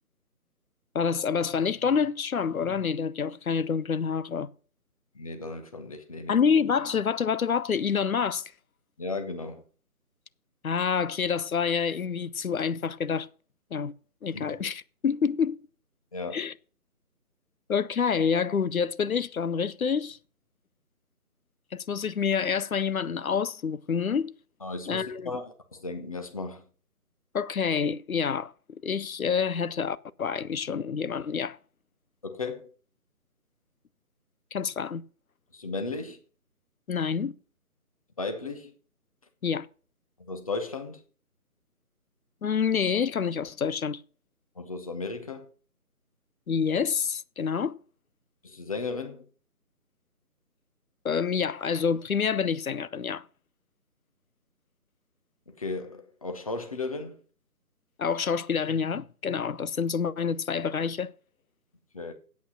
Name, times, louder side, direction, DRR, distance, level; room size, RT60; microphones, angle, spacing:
voice 1, 0.9-4.5 6.3-8.4 10.6-13.3 13.7-13.9 14.2-15.6 16.3-16.5 17.7-20.2 21.7-24.3 24.9-25.3 27.3-28.5 28.8-31.6 34.5-35.0 36.9-37.4 39.4-39.7 42.4-44.0 46.5-47.8 51.0-53.2 58.0-61.1, left 6 dB, 65° left, 0.7 m, -27 dB
voice 2, 5.1-6.4 9.0-9.6 14.3-14.6 16.1-16.5 24.6-26.6 32.2-32.7 35.5-36.2 38.2-38.7 40.3-41.0 44.6-45.5 48.4-49.2 55.5-57.2 61.9-62.1, left 3 dB, 25° left, 0.9 m, -35 dB
8.5 x 8.3 x 5.9 m
figure-of-eight pair, 155°, 46 cm